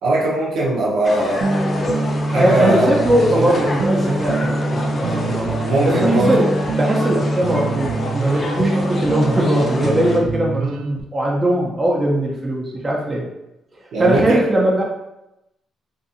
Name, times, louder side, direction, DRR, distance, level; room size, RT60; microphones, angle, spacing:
voice 1, 0.0-1.5 2.3-2.9 3.3-3.6 5.6-6.4 13.9-14.4, right 1 dB, 80° right, -5 dB, 0.8 m, -19 dB
sound 1, 1.0-10.2, left 2 dB, 35° left, 0.5 m, -27 dB
sound 2, 1.4-11.0, right 2 dB, 65° right, 0.3 m, -24 dB
voice 2, 2.3-5.5 5.9-6.5 6.8-13.2 14.0-14.8, right 1 dB, 25° right, -3 dB, 0.6 m, -20 dB
2.6 x 2.5 x 2.7 m, 0.90 s
cardioid pair, 90°, 0 cm